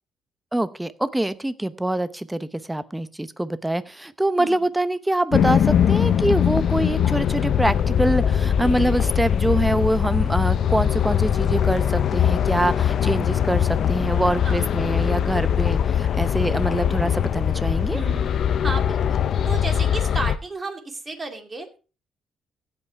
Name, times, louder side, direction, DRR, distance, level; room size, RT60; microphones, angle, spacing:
voice 1, 0.5-18.0, right 1 dB, 10° right, 15 dB, 0.7 m, -24 dB
sound 1, 5.3-20.4, left 9 dB, 60° left, 0.5 m, -21 dB
voice 2, 17.9-18.3 18.6-21.8, right 3 dB, 30° right, 6 dB, 2.3 m, -33 dB
16.0 x 5.6 x 4.5 m, 0.34 s
cardioid pair, 95°, 0 cm